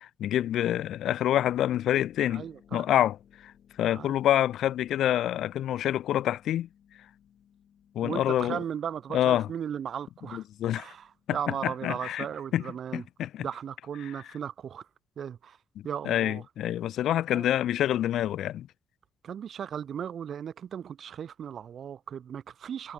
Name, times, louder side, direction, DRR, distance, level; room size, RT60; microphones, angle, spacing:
voice 1, 0.0-2.5 2.7-3.2 3.4-3.5 3.8-6.7 7.9-8.6 9.1-9.5 10.3-10.9 11.3-12.3 12.5-12.6 12.9-13.4 16.1-18.7, left 12 dB, 85° left, 0.8 m, -27 dB
Harp, 1.3-11.9, left 9 dB, 55° left, 7.8 m, -60 dB
voice 2, 2.3-2.9 3.9-4.2 8.0-10.4 10.8-13.0 13.4-14.9 15.2-15.6 15.8-16.4 17.3-17.4 19.2-22.9, right 8 dB, 50° right, 1.1 m, -36 dB
wide cardioid pair, 170°, 0 cm